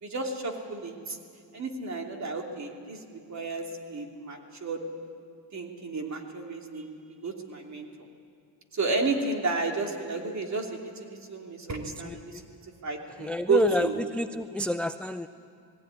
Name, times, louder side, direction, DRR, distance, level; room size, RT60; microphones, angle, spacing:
voice 1, 0.0-1.2 1.5-3.0 3.3-4.8 5.5-6.9 7.2-7.8 8.7-12.5 12.8-13.9, right 3 dB, 40° right, 2 dB, 3.0 m, -32 dB
voice 2, 12.0-12.4 13.2-15.3, left 1 dB, 5° left, 9 dB, 0.4 m, -29 dB
19.5 x 17.0 x 9.9 m, 2.4 s
cardioid pair, 95°, 44 cm